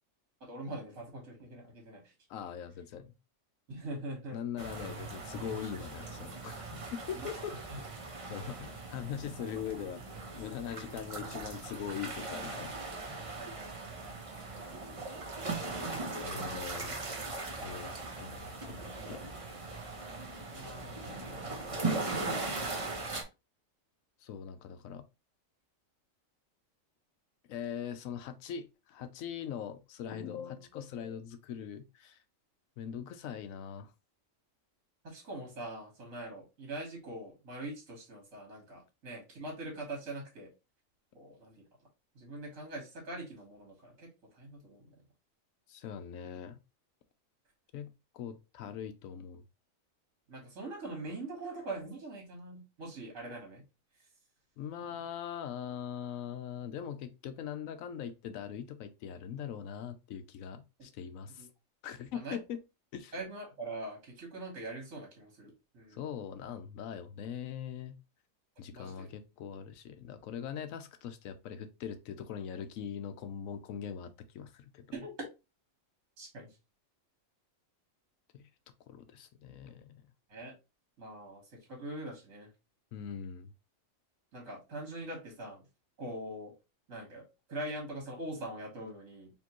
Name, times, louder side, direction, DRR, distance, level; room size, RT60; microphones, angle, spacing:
voice 1, 0.4-2.0 3.7-4.4 7.1-7.6 13.4-14.3 20.5-22.3 35.0-40.5 41.1-41.5 42.2-44.1 44.4-44.8 50.3-53.6 61.4-61.5 62.1-62.4 63.1-66.0 68.7-69.1 74.9-75.3 76.2-76.5 80.3-80.5 81.0-81.4 81.7-82.5 84.3-85.6 86.0-86.5 86.9-89.3, right 2 dB, 70° right, 1.9 m, -43 dB
voice 2, 2.3-3.1 4.3-6.8 7.1-7.6 8.3-10.1 10.4-12.7 16.2-17.0 17.6-19.3 24.2-25.0 27.5-32.2 32.8-33.9 45.7-46.6 47.7-49.4 54.6-61.5 61.8-62.6 62.9-63.1 65.9-68.0 68.6-75.0 78.3-78.5 78.9-80.0 82.9-83.5, left 8 dB, 80° left, 1.0 m, -41 dB
sound 1, 4.6-23.2, right 3 dB, 30° right, 0.7 m, -39 dB
4.4 x 3.0 x 2.9 m
omnidirectional pair, 1.4 m